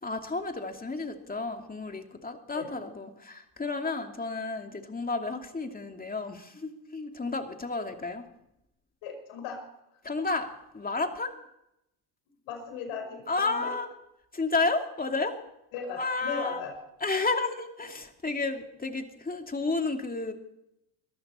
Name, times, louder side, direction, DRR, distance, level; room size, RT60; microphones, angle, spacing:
voice 1, 0.0-8.2 10.0-10.5 10.7-11.3 13.3-13.9 14.3-15.3 16.0-16.6 17.0-20.3, left 3 dB, 20° left, 5 dB, 2.6 m, -31 dB
voice 2, 9.0-9.6 12.5-13.8 15.7-16.8, left 5 dB, 75° left, 4 dB, 5.4 m, -37 dB
22.0 x 14.5 x 4.4 m, 0.82 s
supercardioid pair, 80°, 46 cm